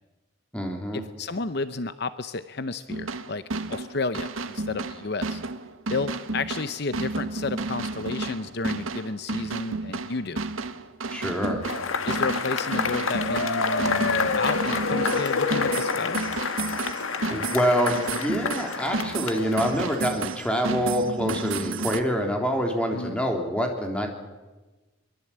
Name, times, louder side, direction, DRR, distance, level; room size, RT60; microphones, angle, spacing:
voice 1, 0.5-1.0 11.1-11.7 17.3-24.1, equal, 5° left, 2 dB, 3.5 m, -26 dB
voice 2, 1.2-3.4 3.7-5.4 5.9-10.4 12.0-16.2 22.9-23.2, left 3 dB, 55° left, 12 dB, 0.8 m, -31 dB
sound 1, 2.9-22.0, right 3 dB, 85° right, 1.4 m, -32 dB
Cheering / Applause / Crowd, 11.6-20.3, left 4 dB, 80° left, 1.6 m, -28 dB
23.0 x 23.0 x 8.7 m, 1.2 s
head